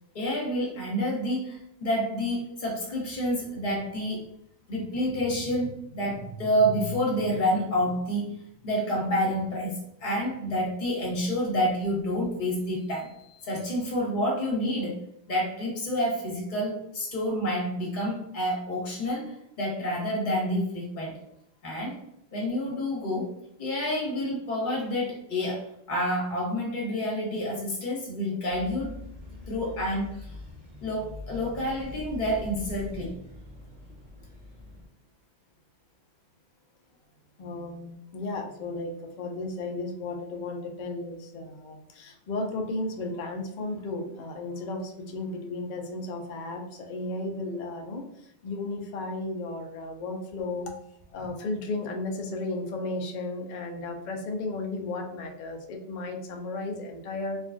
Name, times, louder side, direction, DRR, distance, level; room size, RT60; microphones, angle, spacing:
voice 1, 0.1-4.3 4.7-8.4 8.6-15.0 15.3-21.2 21.6-22.0 22.3-29.0 29.5-30.4 30.8-33.2, equal, 40° left, -3 dB, 1.2 m, -29 dB
sound 1, 28.5-34.9, left 2 dB, 40° right, 1.2 m, -43 dB
voice 2, 37.4-50.7 51.1-57.4, left 2 dB, 75° left, 2 dB, 0.4 m, -34 dB
3.3 x 2.2 x 2.4 m, 0.75 s
omnidirectional pair, 1.3 m